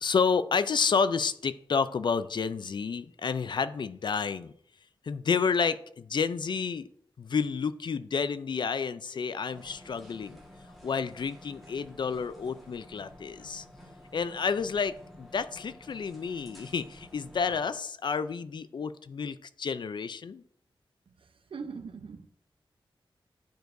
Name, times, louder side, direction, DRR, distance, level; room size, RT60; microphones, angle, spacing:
voice 1, 0.0-4.5 5.0-6.9 7.2-10.4 10.8-13.6 14.1-20.4, left 5 dB, 60° left, 0.4 m, -30 dB
sound 1, 9.5-17.6, left 1 dB, ahead, 1.5 m, -51 dB
voice 2, 21.2-22.3, right 5 dB, 75° right, 0.7 m, -41 dB
10.0 x 4.6 x 2.6 m
wide cardioid pair, 135°, 9 cm